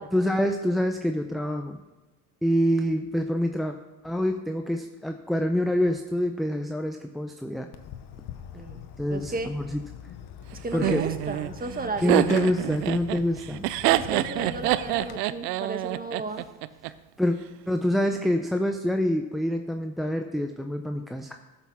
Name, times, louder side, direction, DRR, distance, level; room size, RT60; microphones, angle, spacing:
voice 1, 0.1-1.8 2.4-3.7 4.0-7.7 9.0-9.8 10.7-11.0 12.0-13.7 17.2-17.4 17.7-21.4, equal, ahead, 5 dB, 0.7 m, -26 dB
Fireworks, 7.7-15.2, left 9 dB, 55° left, 1.1 m, -43 dB
voice 2, 9.1-9.5 10.6-12.2 13.9-16.4, right 3 dB, 20° right, 7 dB, 1.4 m, -34 dB
Laughter, 10.8-16.9, right 15 dB, 85° right, 0.6 m, -26 dB
13.0 x 6.1 x 6.0 m, 1.2 s
hypercardioid pair, 70°, 46 cm